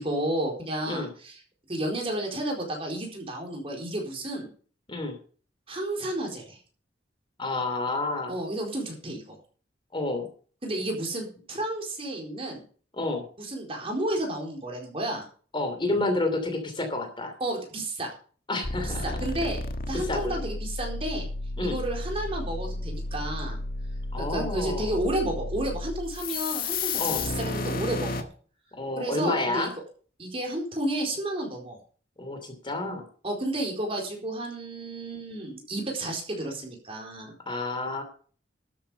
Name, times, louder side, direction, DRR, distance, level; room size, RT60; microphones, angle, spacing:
voice 1, 0.0-1.4 1.7-4.5 5.7-6.6 8.3-9.4 10.6-12.6 13.4-15.3 17.4-18.1 18.8-19.6 19.9-21.3 21.6-23.6 24.2-28.3 29.0-29.7 30.2-31.8 33.2-37.3, right 1 dB, 30° right, 1 dB, 4.3 m, -31 dB
voice 2, 7.4-8.3 9.9-10.3 12.9-13.3 15.5-17.3 18.5-19.0 20.1-20.3 21.6-21.8 24.1-24.9 27.0-27.2 28.7-29.7 32.2-33.0 37.5-38.0, left 2 dB, 30° left, 6 dB, 2.9 m, -29 dB
sound 1, 18.6-28.2, left 2 dB, 55° left, 1.5 m, -32 dB
13.0 x 8.5 x 5.6 m, 0.42 s
head